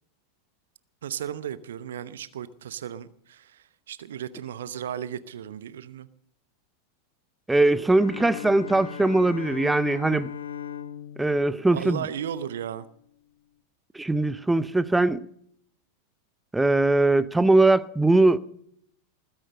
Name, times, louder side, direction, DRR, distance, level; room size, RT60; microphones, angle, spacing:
voice 1, 1.0-6.1 11.7-12.9, right 9 dB, 60° right, 0.8 m, -35 dB
voice 2, 7.5-10.3 11.2-12.0 13.9-15.2 16.5-18.4, right 2 dB, 5° right, 0.6 m, -21 dB
Bowed string instrument, 7.8-12.8, left 8 dB, 70° left, 1.2 m, -38 dB
20.0 x 10.0 x 6.6 m
figure-of-eight pair, 90°, 0 cm